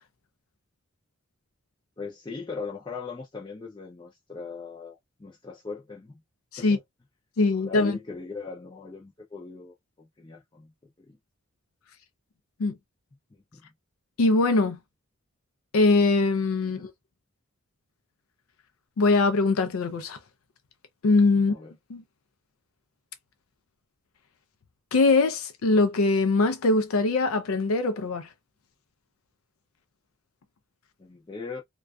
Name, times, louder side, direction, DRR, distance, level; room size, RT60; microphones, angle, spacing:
voice 1, 2.0-6.2 6.6-6.8 7.5-10.7 11.0-11.2 13.3-13.7 16.6-16.9 21.5-21.7 31.0-31.6, left 4 dB, 20° left, 0.4 m, -40 dB
voice 2, 7.4-8.0 12.6-12.8 14.2-14.8 15.7-16.9 19.0-20.2 21.0-21.5 21.9-22.0 24.9-28.3, left 3 dB, 90° left, 0.4 m, -22 dB
2.5 x 2.2 x 2.2 m
head